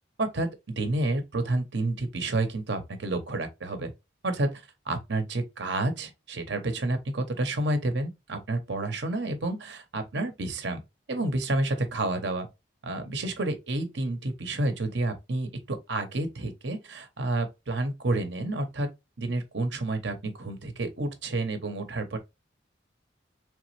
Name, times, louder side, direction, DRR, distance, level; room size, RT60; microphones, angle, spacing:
voice 1, 0.2-3.9 4.2-10.8 11.1-12.5 12.8-18.9 19.2-22.2, right 2 dB, 65° right, 0.8 m, -30 dB
4.1 x 3.4 x 3.1 m
head